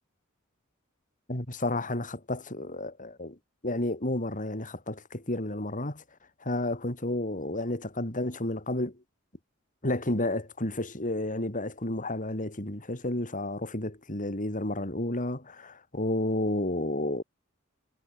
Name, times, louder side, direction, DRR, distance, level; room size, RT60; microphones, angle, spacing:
voice 1, 1.3-3.4 3.6-6.0 6.4-9.0 9.8-17.2, left 1 dB, 40° left, 4.7 m, -31 dB
head